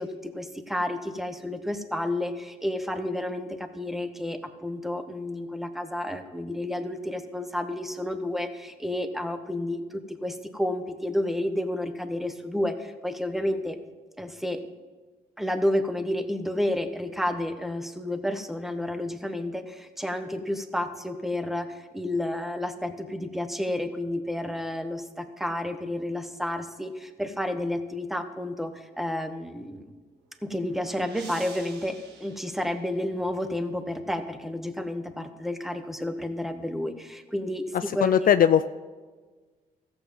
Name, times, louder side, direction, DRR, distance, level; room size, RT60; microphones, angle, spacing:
voice 1, 0.0-13.8 14.2-14.6 15.4-29.9 30.4-38.3, left 1 dB, ahead, 8 dB, 1.3 m, -31 dB
sound 1, 30.1-33.5, right 5 dB, 80° right, 1.6 m, -49 dB
voice 2, 37.7-38.7, left 9 dB, 55° left, 12 dB, 0.4 m, -20 dB
14.0 x 7.8 x 5.5 m, 1.4 s
supercardioid pair, 55°, 17 cm